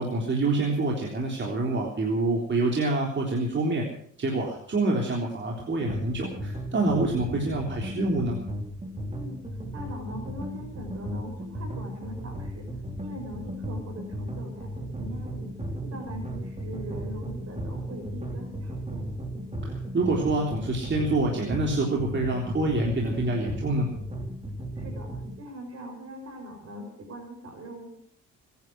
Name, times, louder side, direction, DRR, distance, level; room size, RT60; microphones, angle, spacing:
voice 1, 0.0-3.8 4.2-8.4 19.6-23.9, right 2 dB, 40° right, -1 dB, 3.6 m, -26 dB
sound 1, 5.8-25.4, equal, 20° right, 3.7 m, -35 dB
voice 2, 9.1-12.7 13.0-15.5 15.8-19.1 24.8-27.9, equal, 55° right, 2 dB, 5.7 m, -41 dB
21.5 x 10.5 x 6.2 m, 0.63 s
cardioid pair, 90°, 30 cm